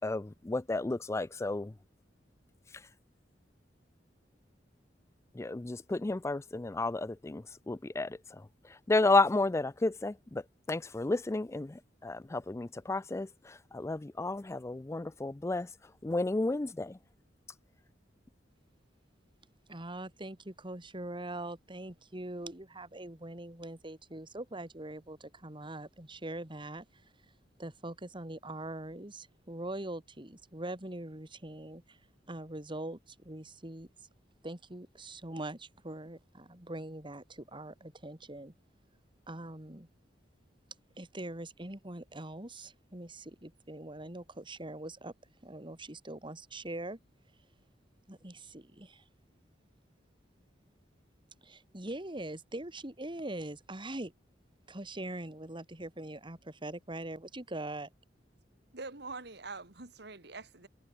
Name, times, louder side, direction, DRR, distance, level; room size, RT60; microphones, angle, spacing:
voice 1, 0.0-1.7 5.4-8.2 8.9-10.4 10.7-15.7 16.0-17.0, left 2 dB, 15° left, 0.4 m, -32 dB
voice 2, 19.7-26.9 27.6-32.0 32.3-33.9 34.4-38.5 39.3-39.9 41.0-45.1 45.4-47.0 48.1-49.0 51.4-54.1 54.7-57.9, right 1 dB, 30° right, 2.7 m, -42 dB
voice 3, 58.7-60.7, right 3 dB, 65° right, 3.0 m, -44 dB
head